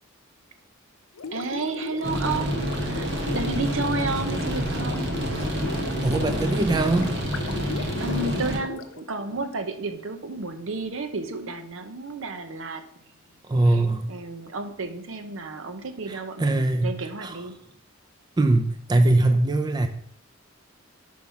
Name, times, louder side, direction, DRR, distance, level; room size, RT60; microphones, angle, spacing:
Gurgling, 1.2-9.5, left 4 dB, 85° left, 0.6 m, -37 dB
voice 1, 1.3-5.1 7.7-12.8 13.7-13.8 14.1-17.6, right 3 dB, 70° right, 8 dB, 0.7 m, -32 dB
sound 1, 2.0-8.6, equal, 55° right, 1.4 m, -28 dB
voice 2, 6.0-7.2 13.5-14.1 16.1-16.9 17.2-17.4 18.4-19.9, right 2 dB, 20° right, 8 dB, 0.4 m, -22 dB
5.6 x 4.7 x 5.5 m, 0.67 s
head